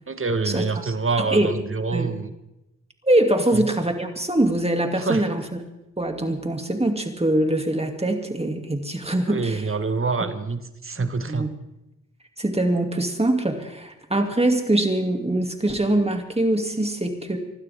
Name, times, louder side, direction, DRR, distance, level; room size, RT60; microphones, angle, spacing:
voice 1, 0.1-2.3 3.5-3.7 5.0-5.3 9.3-11.5, right 4 dB, 45° right, 10 dB, 1.5 m, -26 dB
voice 2, 1.2-1.5 1.9-2.1 3.0-5.4 6.0-9.6 11.3-11.5 12.4-17.4, right 1 dB, 20° right, 4 dB, 2.7 m, -23 dB
26.0 x 12.5 x 3.7 m, 0.93 s
cardioid pair, 45°, 29 cm